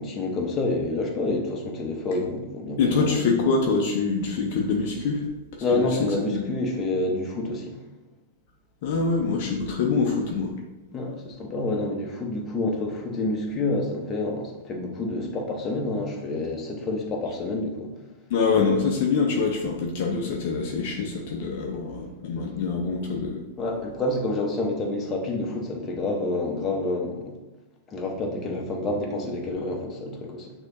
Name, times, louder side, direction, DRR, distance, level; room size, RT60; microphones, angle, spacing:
voice 1, 0.0-3.2 5.6-7.8 10.9-17.9 23.6-27.3 27.9-30.5, left 2 dB, 25° left, 1 dB, 0.9 m, -28 dB
voice 2, 2.8-5.3 5.5-5.9 6.3-6.5 8.8-10.5 18.3-23.4, left 4 dB, 55° left, 1 dB, 0.6 m, -25 dB
6.1 x 2.9 x 2.7 m, 1.0 s
hypercardioid pair, 105°, 0 cm